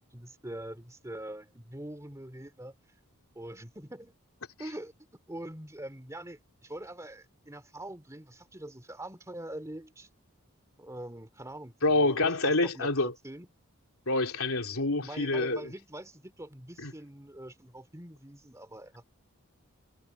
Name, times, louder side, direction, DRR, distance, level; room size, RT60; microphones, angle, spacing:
voice 1, 0.1-2.7 3.3-4.1 4.6-4.9 5.3-10.1 10.8-13.5 15.0-19.0, right 1 dB, 15° right, 2.6 m, -43 dB
voice 2, 11.8-13.1 14.1-15.7 16.8-16.9, left 2 dB, 70° left, 3.4 m, -27 dB
head